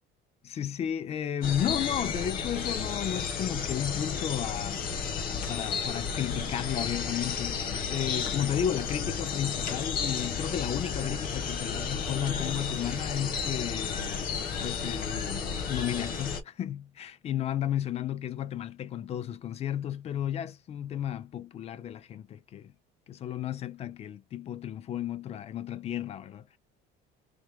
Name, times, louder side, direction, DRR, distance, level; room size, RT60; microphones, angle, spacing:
voice 1, 0.4-4.9 5.3-14.2 14.6-22.7 23.1-26.6, left 10 dB, 35° left, 0.5 m, -33 dB
sound 1, 1.4-16.4, left 6 dB, 50° left, 1.1 m, -32 dB
3.3 x 3.1 x 3.4 m
cardioid pair, 155°, 19 cm